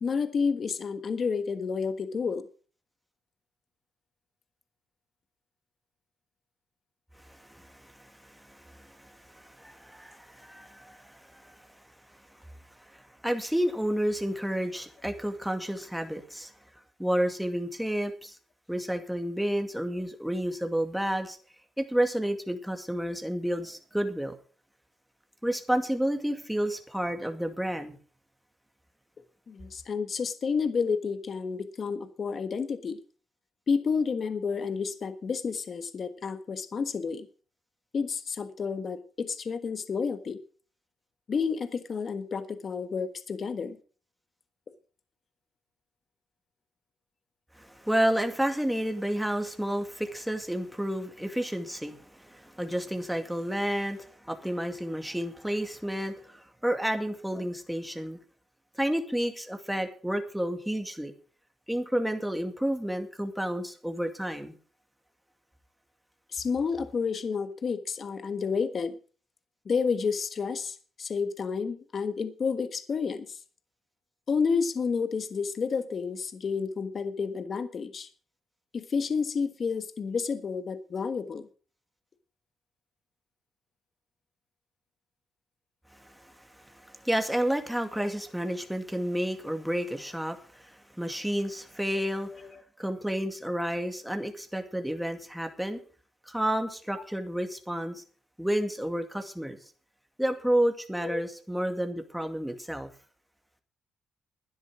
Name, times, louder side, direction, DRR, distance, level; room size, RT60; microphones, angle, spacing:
voice 1, 0.0-2.5 29.5-33.0 33.7-37.3 37.9-40.4 41.3-43.8 66.3-68.9 69.6-73.4 74.3-78.1 78.7-81.5 88.0-88.1 92.3-92.6 101.0-101.2, left 5 dB, 45° left, 10 dB, 1.4 m, -30 dB
voice 2, 7.2-11.7 12.9-16.5 17.0-18.4 18.7-21.4 21.8-24.3 25.4-28.0 47.6-58.2 58.8-61.1 61.7-64.5 86.0-92.5 92.8-95.8 96.3-98.0 98.4-99.6 100.2-102.9, equal, ahead, 6 dB, 2.2 m, -31 dB
12.0 x 10.0 x 6.2 m, 0.40 s
cardioid pair, 90°, 0 cm